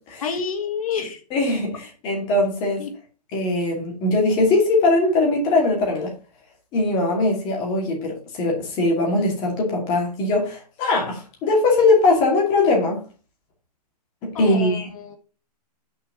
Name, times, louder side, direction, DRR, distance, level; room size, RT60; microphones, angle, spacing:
voice 1, 0.2-1.2 2.8-2.9 14.3-15.2, left 6 dB, 60° left, 2.0 m, -29 dB
voice 2, 1.3-2.8 3.3-6.1 6.7-13.0 14.2-14.9, left 2 dB, 25° left, 2.6 m, -21 dB
6.3 x 5.0 x 5.4 m
hypercardioid pair, 165°, 20 cm